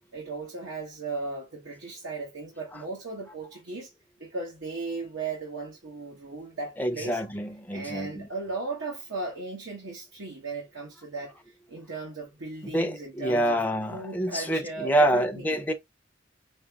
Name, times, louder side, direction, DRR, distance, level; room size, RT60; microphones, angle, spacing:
voice 1, 0.1-3.9 4.2-7.2 7.7-11.3 11.7-13.6 13.9-15.6, right 3 dB, 70° right, 1.1 m, -36 dB
voice 2, 6.8-8.3 12.6-15.7, right 1 dB, 10° left, 0.7 m, -27 dB
5.1 x 2.0 x 3.5 m
head